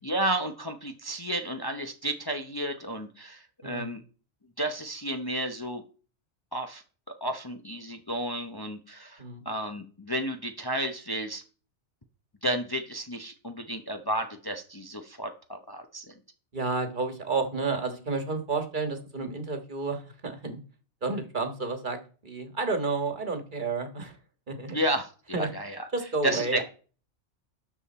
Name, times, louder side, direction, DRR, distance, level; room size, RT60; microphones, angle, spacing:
voice 1, 0.0-4.0 4.6-5.8 6.5-11.4 12.4-16.1 24.7-25.9 26.2-26.6, right 1 dB, 20° left, 5 dB, 0.9 m, -32 dB
voice 2, 3.6-3.9 9.2-9.4 16.5-20.6 21.0-22.0 22.2-24.2 24.5-24.8 25.3-25.5 25.9-26.6, right 3 dB, 45° right, 7 dB, 1.7 m, -31 dB
12.5 x 7.1 x 4.3 m, 0.39 s
omnidirectional pair, 1.2 m